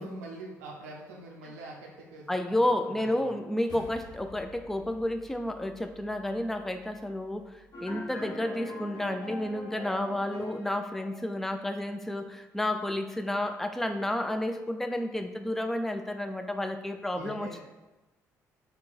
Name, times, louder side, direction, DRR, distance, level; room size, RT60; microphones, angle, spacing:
voice 1, 0.0-2.6 3.0-3.3 17.1-17.6, right 2 dB, 75° right, -1 dB, 0.5 m, -44 dB
voice 2, 2.3-17.6, left 1 dB, 5° left, 7 dB, 0.3 m, -31 dB
sound 1, 3.7-8.2, left 2 dB, 55° left, 0.5 m, -53 dB
sound 2, 7.7-11.4, left 1 dB, 40° left, 0.9 m, -42 dB
3.1 x 2.1 x 4.2 m, 1.1 s
figure-of-eight pair, 45°, 8 cm